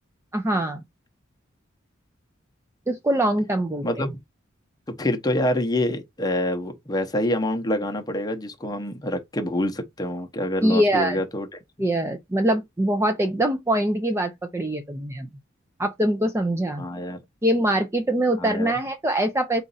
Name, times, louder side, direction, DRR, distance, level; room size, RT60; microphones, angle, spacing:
voice 1, 0.3-0.8 2.9-4.1 10.6-11.2 11.8-15.3 15.8-16.8 17.4-19.6, right 1 dB, 15° right, 0.4 m, -23 dB
voice 2, 4.9-11.5 16.8-17.2 18.4-18.7, left 1 dB, 20° left, 0.7 m, -26 dB
4.0 x 2.5 x 3.9 m
head